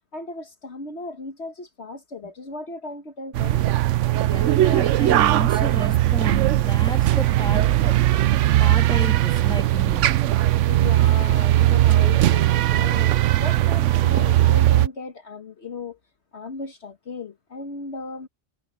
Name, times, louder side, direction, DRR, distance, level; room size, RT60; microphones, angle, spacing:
voice 1, 0.1-3.7 10.7-16.0 16.3-18.3, left 3 dB, 60° left, 1.7 m, -36 dB
sound 1, 3.3-14.9, right 14 dB, 80° right, 0.9 m, -19 dB
voice 2, 4.1-8.2 8.6-10.1, left 1 dB, 5° left, 2.9 m, -33 dB
omnidirectional pair, 1.3 m